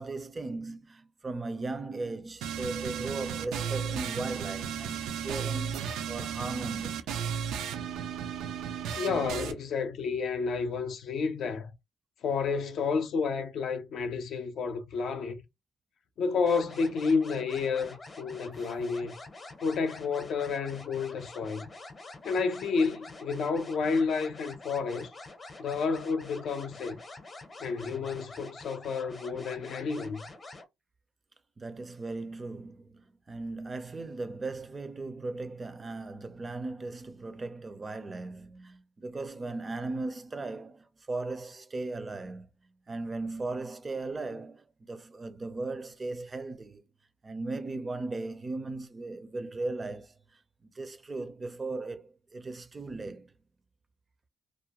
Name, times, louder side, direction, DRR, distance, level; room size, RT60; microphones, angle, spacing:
voice 1, 0.0-5.8 6.1-7.0 31.6-42.5 42.9-46.8 47.2-50.1 50.6-53.3, right 3 dB, 30° right, 0.5 m, -37 dB
sound 1, 2.4-9.5, right 8 dB, 85° right, 0.4 m, -34 dB
voice 2, 9.0-11.7 12.2-15.4 16.2-19.1 19.6-21.7 22.2-25.1 25.6-27.0 27.6-30.3, left 5 dB, 70° left, 0.5 m, -30 dB
sound 2, 16.5-30.6, left 2 dB, 35° left, 0.7 m, -47 dB
2.4 x 2.1 x 2.9 m
cardioid pair, 90°, 0 cm